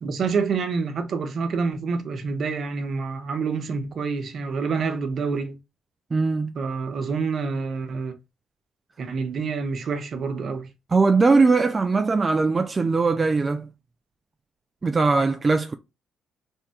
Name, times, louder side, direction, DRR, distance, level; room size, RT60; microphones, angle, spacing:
voice 1, 0.0-5.6 6.5-8.1 9.0-10.7, right 5 dB, 55° right, 0.8 m, -27 dB
voice 2, 6.1-6.5 10.9-13.7 14.8-15.7, right 4 dB, 30° right, 0.3 m, -20 dB
3.5 x 2.2 x 4.2 m
cardioid pair, 90°, 0 cm